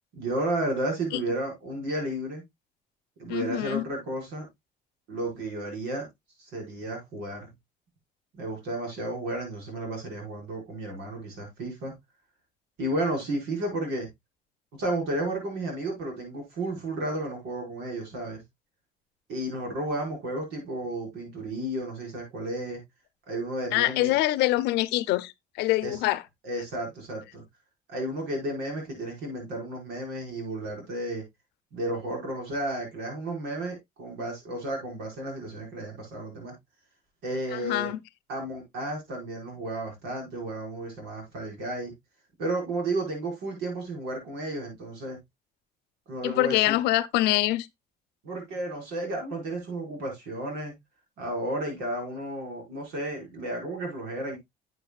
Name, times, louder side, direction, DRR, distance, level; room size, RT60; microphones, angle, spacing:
voice 1, 0.1-2.4 3.2-4.5 5.1-6.1 6.4-7.5 8.3-12.0 12.8-14.1 14.7-18.4 19.3-22.8 23.3-24.1 25.8-26.0 26.4-27.4 27.9-31.2 31.7-36.6 37.2-37.9 38.3-41.9 42.4-45.2 46.1-46.8 48.2-50.7 51.2-54.4, right 1 dB, 90° right, 5.1 m, -32 dB
voice 2, 3.3-3.9 23.7-26.2 37.5-38.0 46.2-47.7, left 16 dB, 90° left, 0.7 m, -25 dB
10.5 x 7.9 x 2.3 m
cardioid pair, 110°, 17 cm